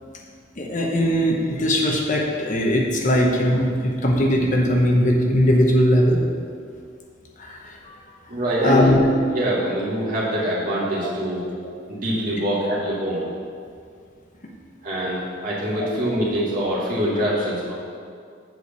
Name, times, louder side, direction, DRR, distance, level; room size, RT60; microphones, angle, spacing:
voice 1, 0.6-6.2 7.4-8.0 8.6-9.0 11.0-11.1 15.8-15.9, equal, 40° left, 0 dB, 0.9 m, -19 dB
voice 2, 8.3-9.0 9.3-11.4 11.9-13.2 14.8-17.7, equal, 45° right, -7 dB, 2.3 m, -24 dB
7.8 x 4.9 x 6.8 m, 2.2 s
head